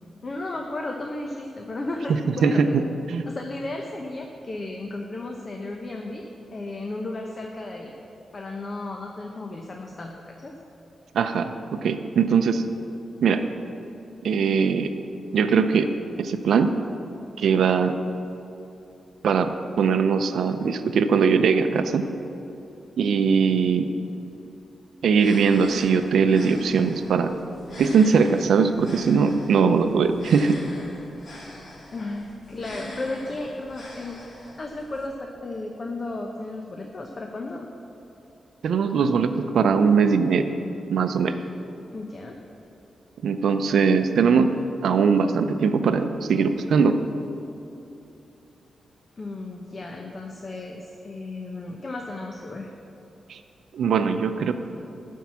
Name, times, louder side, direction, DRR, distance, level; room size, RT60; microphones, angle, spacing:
voice 1, 0.2-2.6 3.3-6.2 6.5-7.9 8.3-10.5 31.9-34.2 34.6-37.7 41.9-42.4 49.2-52.7, left 2 dB, 40° left, 2 dB, 0.8 m, -34 dB
voice 2, 2.4-2.8 3.1-3.3 11.1-12.6 13.2-13.4 14.2-14.9 15.3-15.9 16.2-16.8 17.4-17.9 19.2-22.1 23.0-23.9 25.0-27.3 27.8-30.6 38.6-40.5 40.9-41.4 43.2-44.5 44.8-47.0 53.3-53.4 53.7-54.5, right 5 dB, 80° right, 9 dB, 0.5 m, -21 dB
sound 1, 25.1-35.1, left 1 dB, 60° left, 2.1 m, -42 dB
11.5 x 4.6 x 7.4 m, 2.9 s
cardioid pair, 85°, 0 cm